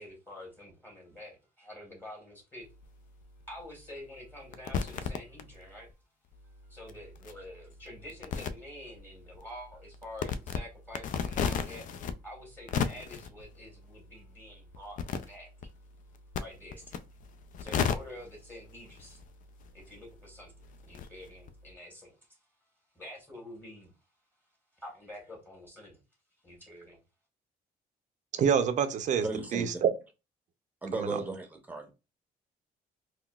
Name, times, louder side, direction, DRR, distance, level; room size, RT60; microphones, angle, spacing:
voice 1, 0.0-2.7 3.5-5.9 6.6-11.9 12.2-15.0 15.3-15.5 16.4-17.0 17.6-19.2 19.7-22.4 22.9-23.9 24.7-26.0 26.4-27.0, left 1 dB, 10° left, 1.4 m, -47 dB
sound 1, 2.6-5.9 6.3-21.7, left 6 dB, 55° left, 0.4 m, -38 dB
voice 2, 28.3-29.3 29.5-29.9 30.9-31.2, right 7 dB, 50° right, 0.5 m, -26 dB
voice 3, 29.2-29.8 30.8-31.9, right 2 dB, 10° right, 0.8 m, -36 dB
3.8 x 2.3 x 2.3 m
cardioid pair, 115°, 16 cm